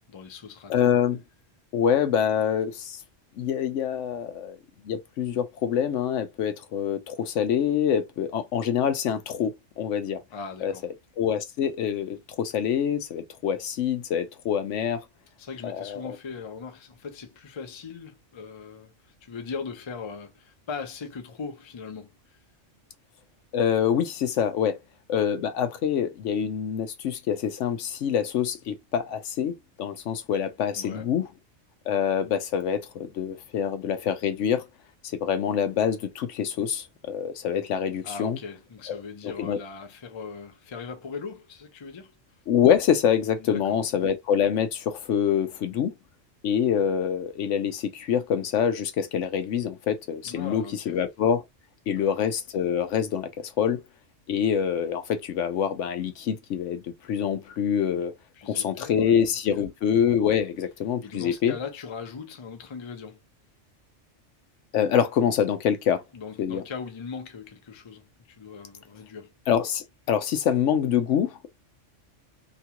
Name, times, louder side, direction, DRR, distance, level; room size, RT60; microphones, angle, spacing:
voice 1, 0.1-0.7 10.3-10.9 15.4-22.4 30.8-31.1 38.0-42.2 43.4-43.9 50.2-51.0 51.9-52.1 58.3-59.2 59.5-59.6 61.0-63.2 66.1-69.3, left 5 dB, 35° left, 0.4 m, -39 dB
voice 2, 0.7-1.2 1.7-3.0 3.4-4.6 4.8-10.2 10.6-15.0 15.6-16.2 23.5-24.8 25.1-31.3 31.9-34.7 35.0-38.4 38.9-39.6 42.5-45.9 46.4-51.4 51.9-53.8 54.3-58.1 58.5-61.6 64.7-66.0 66.4-66.6 69.5-71.5, left 8 dB, 80° left, 0.9 m, -26 dB
2.9 x 2.3 x 2.8 m
omnidirectional pair, 1.3 m